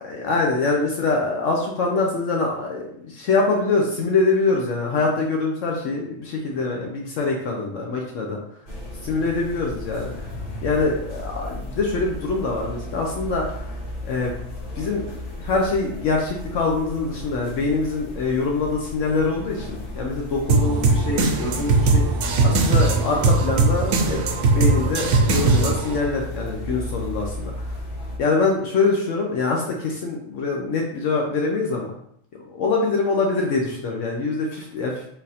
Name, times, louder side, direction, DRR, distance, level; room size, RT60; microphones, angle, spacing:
voice 1, 0.0-8.4 9.0-10.3 10.6-13.8 14.0-14.3 14.8-22.1 22.4-24.2 24.5-27.5 28.2-31.9 32.5-35.1, left 3 dB, 75° left, -1 dB, 1.0 m, -24 dB
sound 1, 8.7-28.2, left 1 dB, 45° left, 1.0 m, -35 dB
sound 2, 20.5-26.0, right 3 dB, 75° right, 0.9 m, -19 dB
4.0 x 2.5 x 4.1 m, 0.70 s
omnidirectional pair, 1.3 m